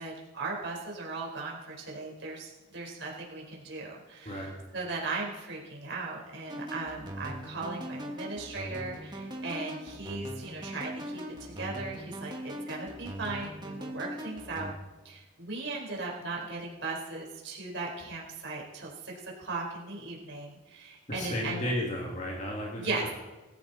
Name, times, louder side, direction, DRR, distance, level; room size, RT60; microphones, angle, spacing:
voice 1, 0.0-14.7 15.0-21.6 22.8-23.1, right 3 dB, 60° right, -2 dB, 4.6 m, -38 dB
sound 1, 6.5-14.7, equal, 20° right, 1.8 m, -40 dB
voice 2, 21.1-23.1, left 1 dB, 35° left, -2 dB, 2.5 m, -33 dB
19.0 x 15.0 x 4.3 m, 1.1 s
head